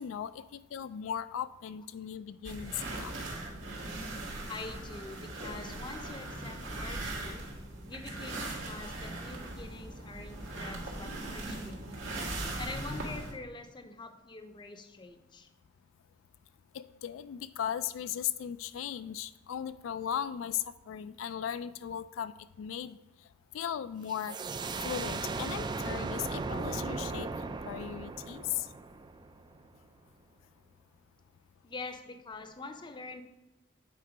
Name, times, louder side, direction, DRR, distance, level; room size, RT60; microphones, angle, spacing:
voice 1, 0.0-3.1 16.7-22.3 22.6-23.0 23.5-24.4 24.8-27.3 27.6-28.7, left 9 dB, 80° left, 13 dB, 0.3 m, -37 dB
sound 1, 2.4-13.3, right 2 dB, 75° right, 2.0 m, -39 dB
voice 2, 4.5-7.5 7.9-12.2 12.6-15.5 24.6-24.8 31.6-33.2, left 3 dB, 25° left, 8 dB, 0.6 m, -45 dB
sound 2, 24.1-29.6, right 3 dB, 20° right, 0.3 m, -37 dB
8.7 x 4.4 x 5.0 m, 1.0 s
head